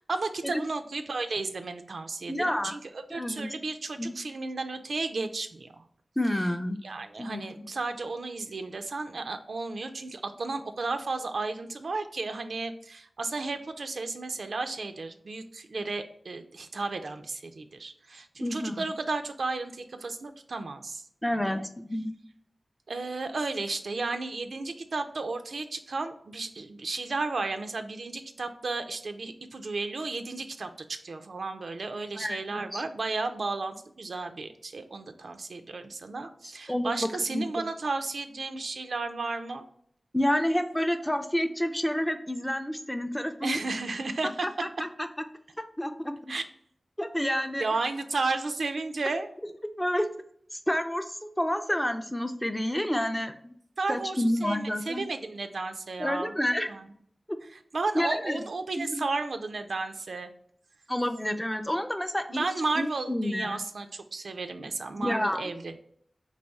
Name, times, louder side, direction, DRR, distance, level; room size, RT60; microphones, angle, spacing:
voice 1, 0.1-5.8 6.8-21.0 21.3-21.6 22.9-39.7 43.4-44.5 46.3-46.4 47.6-49.3 53.8-56.3 56.7-56.9 57.5-60.3 62.3-65.8, right 3 dB, 80° right, 8 dB, 0.4 m, -33 dB
voice 2, 2.3-2.8 3.1-3.5 4.0-4.1 6.2-6.8 7.2-7.6 18.4-18.9 21.2-22.1 32.1-32.8 36.7-37.4 40.1-43.6 44.6-45.1 45.6-46.3 47.0-47.6 49.8-50.1 50.5-53.5 53.9-55.1 56.0-56.7 57.3-57.4 57.9-58.4 58.8-59.0 60.9-62.5 62.8-63.6 65.0-65.4, left 1 dB, 10° left, 7 dB, 0.4 m, -29 dB
4.1 x 3.0 x 3.4 m, 0.65 s
wide cardioid pair, 65°, 0 cm